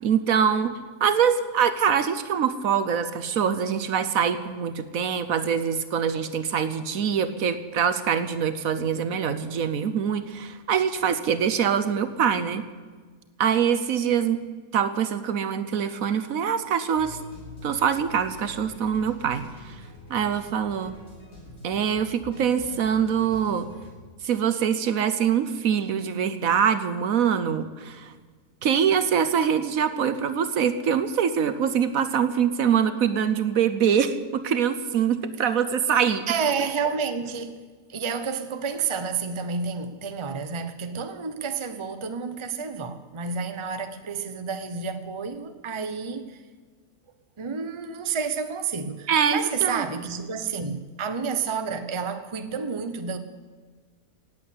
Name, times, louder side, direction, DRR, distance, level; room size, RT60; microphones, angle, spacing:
voice 1, 0.0-0.7 1.0-12.6 13.4-14.4 14.7-17.2 17.6-19.7 20.1-21.0 21.6-23.7 24.2-28.1 28.6-36.2 49.1-49.8, right 7 dB, 65° right, 12 dB, 1.2 m, -24 dB
sound 1, 16.9-23.9, left 1 dB, 55° left, 4.3 m, -45 dB
voice 2, 36.3-37.6 37.9-46.4 47.4-53.2, right 5 dB, 25° right, 9 dB, 0.8 m, -30 dB
17.5 x 8.4 x 8.5 m, 1.5 s
omnidirectional pair, 1.6 m